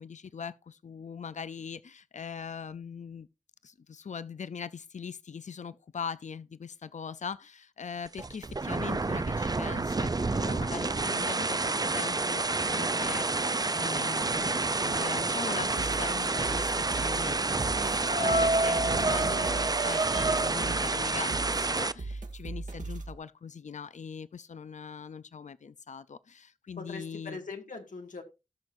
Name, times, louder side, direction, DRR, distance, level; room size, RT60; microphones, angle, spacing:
voice 1, 0.0-3.3 3.6-27.4, left 6 dB, 70° left, 0.5 m, -41 dB
sound 1, 8.0-21.9, right 3 dB, 30° right, 0.5 m, -29 dB
sound 2, 13.5-15.2 16.7-16.8 17.1-17.2 17.5-20.5, right 2 dB, 50° right, 1.0 m, -31 dB
sound 3, 15.8-23.1, right 3 dB, 75° right, 2.1 m, -39 dB
voice 2, 26.8-28.2, left 4 dB, 90° left, 2.0 m, -41 dB
18.0 x 6.2 x 2.6 m
wide cardioid pair, 65°, 13 cm